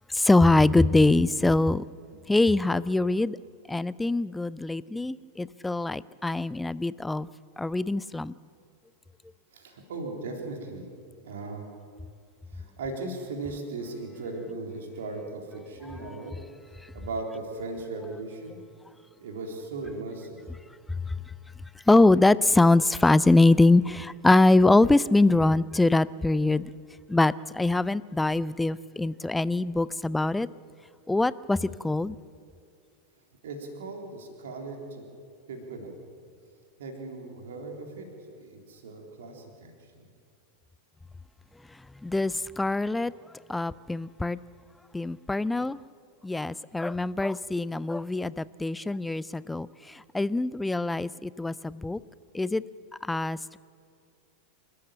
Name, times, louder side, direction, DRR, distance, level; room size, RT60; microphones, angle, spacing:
voice 1, 0.1-1.8 2.3-3.4 3.7-7.3 7.6-8.3 15.9-16.0 21.9-26.7 27.1-30.5 31.1-32.2 42.0-43.1 43.5-44.4 44.9-45.8 46.2-52.0 52.3-52.6 53.1-53.6, left 2 dB, 5° left, 19 dB, 0.5 m, -23 dB
voice 2, 9.5-10.9 11.2-11.7 12.5-16.4 16.9-18.6 19.2-20.4 33.4-35.1 35.5-35.9 36.8-38.1 38.4-39.7 40.0-40.1, right 3 dB, 60° right, 2 dB, 3.8 m, -37 dB
28.0 x 13.5 x 7.5 m, 2.3 s
figure-of-eight pair, 90°, 0 cm